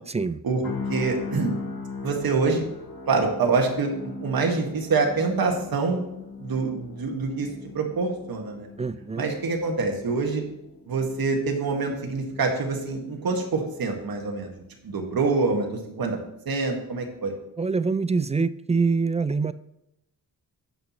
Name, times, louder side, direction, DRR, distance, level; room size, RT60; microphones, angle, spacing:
voice 1, 0.1-0.4 8.8-9.2 17.6-19.5, right 4 dB, 20° right, 15 dB, 0.3 m, -25 dB
sound 1, 0.6-14.6 15.0-15.2, left 4 dB, 60° left, 3.5 m, -40 dB
voice 2, 0.9-1.5 2.0-2.6 3.1-6.0 6.4-7.5 7.7-8.7 9.1-10.4 10.9-14.5 14.8-16.2 16.4-17.3, right 4 dB, 65° right, 2 dB, 1.7 m, -25 dB
17.0 x 5.7 x 3.0 m, 0.86 s
cardioid pair, 85°, 38 cm